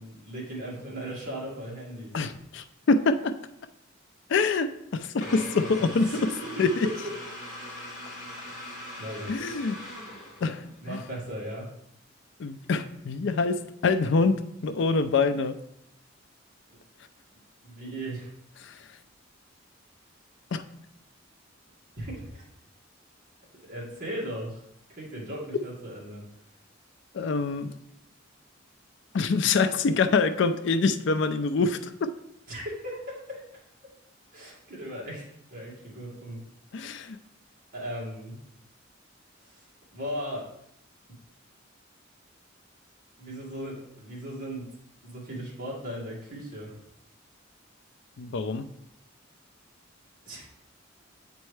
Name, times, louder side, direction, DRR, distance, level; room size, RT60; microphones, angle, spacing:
voice 1, 0.0-2.3 5.6-6.3 6.6-7.1 8.5-9.4 10.8-11.7 17.3-18.3 21.9-22.5 23.6-24.6 24.9-26.2 32.5-33.4 34.3-36.4 37.7-38.4 39.4-39.7 39.9-40.5 43.2-44.7 45.0-46.7 50.3-50.5, right 1 dB, 45° right, -5 dB, 2.0 m, -37 dB
voice 2, 2.1-3.4 4.3-6.2 6.6-6.9 9.3-9.8 10.4-11.0 12.4-15.6 18.6-18.8 20.5-20.6 27.1-27.7 29.1-32.1 36.7-37.2 48.2-48.7, left 4 dB, 65° left, 10 dB, 0.4 m, -25 dB
sound 1, 5.2-10.8, left 1 dB, 40° left, 1.9 m, -40 dB
8.1 x 4.4 x 3.2 m, 0.76 s
head